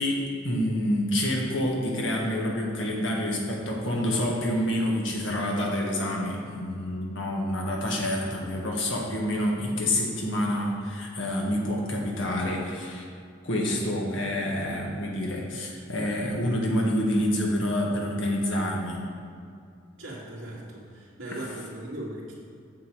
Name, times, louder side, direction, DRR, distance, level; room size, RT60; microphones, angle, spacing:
voice 1, 0.0-13.1 13.4-19.1 21.3-21.4, left 1 dB, 65° left, -1 dB, 1.6 m, -27 dB
voice 2, 20.0-22.3, right 1 dB, 80° right, -5 dB, 2.3 m, -38 dB
7.8 x 7.3 x 4.7 m, 2.3 s
head